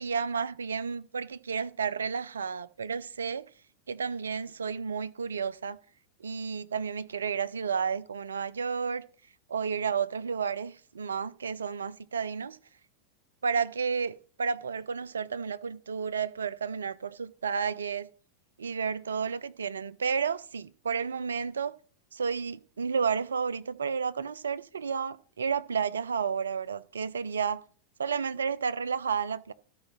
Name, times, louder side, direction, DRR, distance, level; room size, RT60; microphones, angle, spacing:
voice 1, 0.0-3.4 3.9-5.8 6.2-9.0 9.5-12.6 13.4-18.1 18.6-21.7 22.1-27.6 28.0-29.5, right 6 dB, 70° right, 0.5 m, -31 dB
12.5 x 4.9 x 6.1 m
figure-of-eight pair, 90°, 0 cm